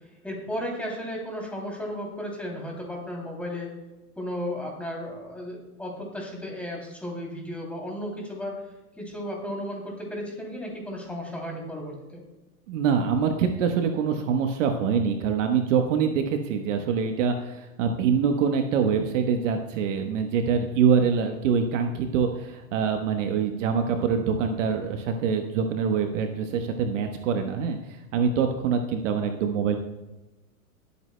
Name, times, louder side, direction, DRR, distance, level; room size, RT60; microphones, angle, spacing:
voice 1, 0.2-3.7 4.2-8.5 9.0-12.2, equal, 5° left, -2 dB, 2.9 m, -34 dB
voice 2, 12.7-29.8, right 6 dB, 55° right, 5 dB, 1.2 m, -25 dB
19.0 x 8.4 x 2.2 m, 1.0 s
hypercardioid pair, 130°, 45 cm